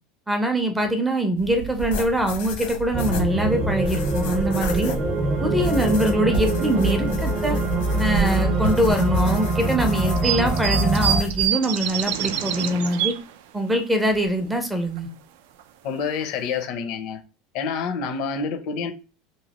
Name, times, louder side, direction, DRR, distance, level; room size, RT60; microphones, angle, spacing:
voice 1, 0.3-4.9 5.4-7.6 8.0-13.2 13.5-15.1, right 1 dB, 5° right, 0.4 m, -23 dB
sound 1, 1.4-11.5, right 1 dB, 85° left, 0.9 m, -32 dB
sound 2, 2.9-11.2, right 2 dB, 35° right, 0.8 m, -24 dB
sound 3, 6.7-7.0 7.6-7.7 8.7-8.8 10.2-13.3 13.8-13.9 14.1-14.3 14.7-15.0 15.6-15.7 16.0-16.2 16.6-16.7, right 10 dB, 80° right, 0.3 m, -26 dB
voice 2, 15.8-17.2 17.5-18.9, left 5 dB, 50° left, 0.5 m, -27 dB
3.0 x 2.7 x 2.8 m
cardioid pair, 165°, 0 cm